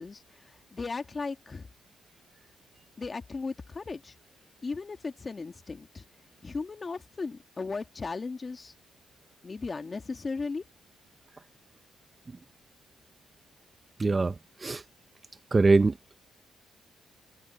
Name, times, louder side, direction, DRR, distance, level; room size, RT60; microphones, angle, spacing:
voice 1, 0.0-1.7 3.0-4.1 4.6-6.0 6.4-8.7 9.4-10.6, left 4 dB, 30° left, 2.1 m, -36 dB
voice 2, 14.0-14.8 15.5-16.0, right 3 dB, 25° right, 0.7 m, -23 dB
cardioid pair, 90°, 0 cm